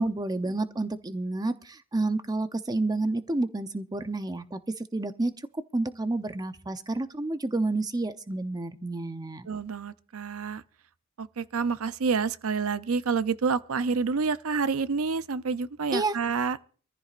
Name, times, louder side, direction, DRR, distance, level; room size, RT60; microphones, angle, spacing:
voice 1, 0.0-9.5 15.9-16.1, right 2 dB, 15° right, 0.6 m, -30 dB
voice 2, 9.5-10.6 11.2-16.6, right 5 dB, 70° right, 0.6 m, -28 dB
24.0 x 14.5 x 2.5 m
head